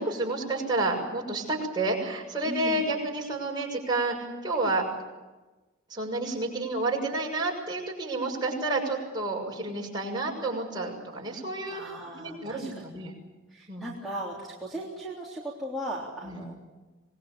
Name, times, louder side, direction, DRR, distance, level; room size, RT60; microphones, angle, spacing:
voice 1, 0.0-4.1 4.4-4.8 5.9-11.8 12.2-13.1 13.7-13.9 16.2-16.4, right 2 dB, 20° right, -1 dB, 6.7 m, -30 dB
voice 2, 2.4-2.9 11.7-12.8 13.5-16.5, equal, ahead, -7 dB, 3.4 m, -37 dB
26.0 x 21.0 x 8.8 m, 1.2 s
head